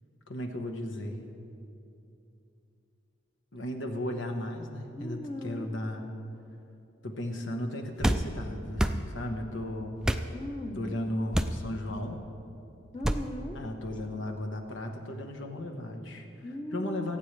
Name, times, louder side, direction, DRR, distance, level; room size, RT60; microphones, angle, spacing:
voice 1, 0.3-1.2 3.5-6.1 7.0-10.0 10.8-12.2 13.5-16.3 16.7-17.2, left 1 dB, 75° left, 4 dB, 1.3 m, -35 dB
voice 2, 4.9-5.7 10.3-10.8 12.9-13.6 16.4-17.2, equal, 25° left, 4 dB, 0.9 m, -38 dB
sound 1, 8.0-8.3 8.8-9.0 10.0-10.3 11.3-11.6 13.0-13.2, right 1 dB, 5° right, 0.3 m, -26 dB
24.5 x 8.8 x 3.4 m, 2.7 s
head